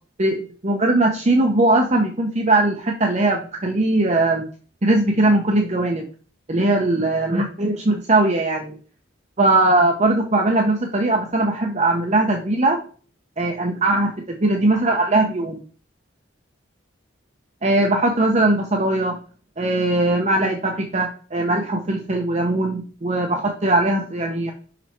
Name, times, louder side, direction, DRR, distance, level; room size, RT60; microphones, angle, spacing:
voice 1, 0.2-4.4 4.8-6.1 6.5-8.8 9.4-12.8 13.4-15.6 17.6-19.2 19.6-24.5, right 2 dB, 35° right, 2 dB, 0.8 m, -20 dB
5.7 x 5.1 x 4.4 m, 0.40 s
head